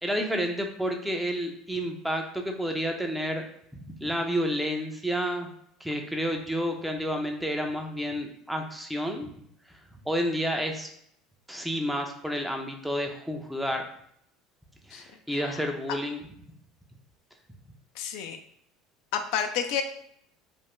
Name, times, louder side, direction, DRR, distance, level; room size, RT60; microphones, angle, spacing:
voice 1, 0.0-3.4 4.0-5.5 5.8-9.3 10.1-10.9 11.5-13.8 14.9-16.2, equal, 5° right, 3 dB, 0.5 m, -30 dB
voice 2, 15.3-15.6 18.0-18.4 19.1-19.8, left 8 dB, 70° left, 6 dB, 0.3 m, -30 dB
2.5 x 2.1 x 3.5 m, 0.68 s
supercardioid pair, 90°, 0 cm